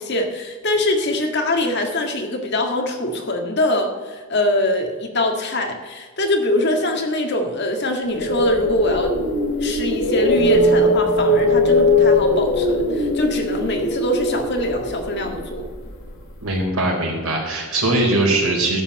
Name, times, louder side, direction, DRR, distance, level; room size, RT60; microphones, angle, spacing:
voice 1, 0.0-9.1 9.6-15.7, left 1 dB, 50° left, 3 dB, 1.8 m, -23 dB
sound 1, 8.1-16.1, left 1 dB, 75° left, 2.9 m, -20 dB
voice 2, 16.4-18.8, right 2 dB, 80° right, -1 dB, 4.4 m, -20 dB
13.5 x 5.6 x 7.9 m, 1.4 s
head